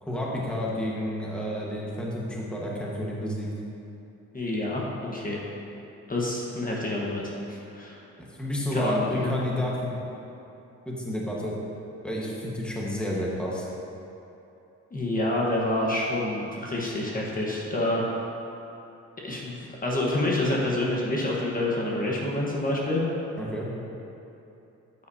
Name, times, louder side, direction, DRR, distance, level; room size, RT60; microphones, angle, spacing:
voice 1, 0.0-3.5 8.4-10.0 10.9-11.5 12.0-13.7 23.4-23.7, left 1 dB, 5° left, -4 dB, 1.4 m, -30 dB
voice 2, 4.3-5.4 6.1-8.0 8.7-9.3 14.9-18.1 19.2-19.6 19.8-23.0, left 1 dB, 30° left, -4 dB, 1.3 m, -27 dB
9.2 x 8.4 x 2.8 m, 2.8 s
cardioid pair, 90°, 30 cm